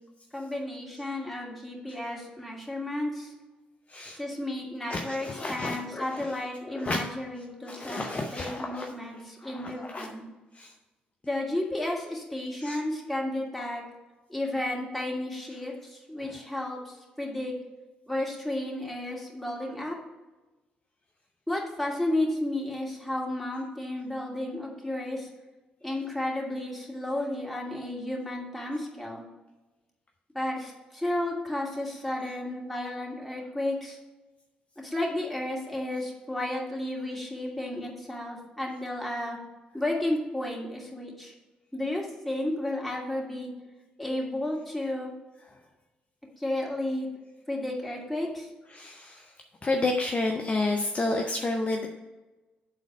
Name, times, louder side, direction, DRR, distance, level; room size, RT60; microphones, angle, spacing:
voice 1, 0.3-3.3 4.2-8.1 8.3-10.2 11.2-13.8 14.3-17.5 18.1-20.0 21.5-25.3 25.8-29.2 30.3-34.0 34.8-39.4 39.7-41.3 41.7-43.5 44.0-45.1 46.4-47.1 47.5-48.5, left 1 dB, 5° left, -3 dB, 2.6 m, -32 dB
voice 2, 3.9-4.2 4.9-7.0 7.7-8.9 9.4-10.1 10.5-10.7 12.6-12.8 16.2-16.4 48.7-49.3 49.6-51.9, left 2 dB, 30° left, 2 dB, 0.9 m, -31 dB
8.6 x 3.9 x 6.5 m, 1.1 s
figure-of-eight pair, 40°, 4 cm